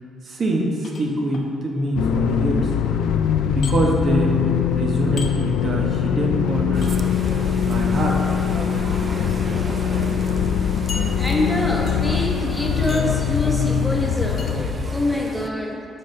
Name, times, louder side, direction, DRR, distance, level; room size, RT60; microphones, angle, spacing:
voice 1, 0.2-2.7 3.5-4.4 4.7-7.1 7.6-8.2, right 1 dB, 50° right, -1 dB, 1.1 m, -24 dB
sound 1, 0.8-1.5 3.6-3.8 5.2-5.3 6.8-6.9 8.3-8.5 9.3-9.4 9.7-9.8 10.9-11.5 11.9-12.2 12.9-13.2 14.4-14.6, left 4 dB, 55° left, 0.8 m, -37 dB
sound 2, 2.0-15.4, left 8 dB, 85° left, 0.3 m, -22 dB
sound 3, 6.7-15.5, right 3 dB, 35° right, 0.4 m, -35 dB
voice 2, 11.2-15.9, left 1 dB, 5° left, -2 dB, 1.1 m, -25 dB
8.8 x 5.4 x 3.3 m, 2.6 s
cardioid pair, 90°, 0 cm